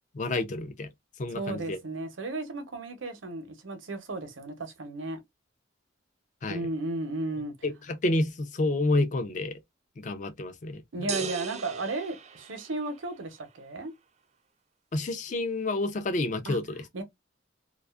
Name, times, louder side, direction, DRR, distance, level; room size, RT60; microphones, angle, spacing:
voice 1, 0.1-0.9 1.2-1.8 6.4-6.7 7.6-9.5 10.0-10.8 14.9-16.8, left 2 dB, 40° left, 0.4 m, -29 dB
voice 2, 1.3-5.2 6.5-7.5 10.9-13.9 16.4-16.6 16.9-17.0, right 2 dB, 85° right, 0.7 m, -34 dB
sound 1, 11.1-13.1, right 5 dB, 35° right, 0.3 m, -37 dB
2.4 x 2.3 x 2.3 m
head